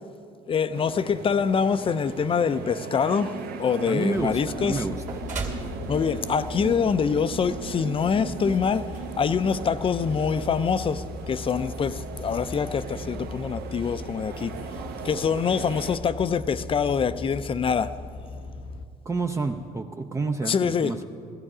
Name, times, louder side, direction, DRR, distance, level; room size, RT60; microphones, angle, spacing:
voice 1, 0.5-4.8 5.9-8.8 9.2-14.5 15.0-17.9 20.4-20.9, left 6 dB, 30° left, 0.5 m, -25 dB
sound 1, 0.7-16.0, right 6 dB, 70° right, 1.0 m, -38 dB
voice 2, 3.9-5.0 19.0-21.0, right 3 dB, 15° right, 0.5 m, -29 dB
sound 2, 4.2-18.9, left 3 dB, 80° left, 0.9 m, -39 dB
sound 3, 4.7-10.1, right 4 dB, 45° right, 2.3 m, -41 dB
15.0 x 15.0 x 4.9 m
cardioid pair, 110°, 17 cm